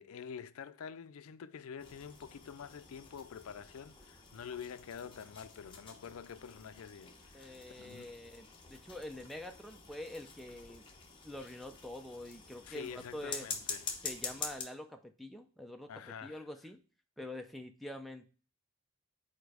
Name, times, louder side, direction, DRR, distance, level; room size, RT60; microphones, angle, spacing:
voice 1, 0.0-8.1 12.6-13.9 15.9-16.5, left 7 dB, 75° left, 0.4 m, -47 dB
sound 1, 1.8-14.6, left 5 dB, 20° left, 0.9 m, -47 dB
voice 2, 7.3-10.9 11.2-13.5 14.0-16.8 17.2-18.3, left 1 dB, ahead, 0.4 m, -46 dB
5.0 x 4.4 x 4.8 m
head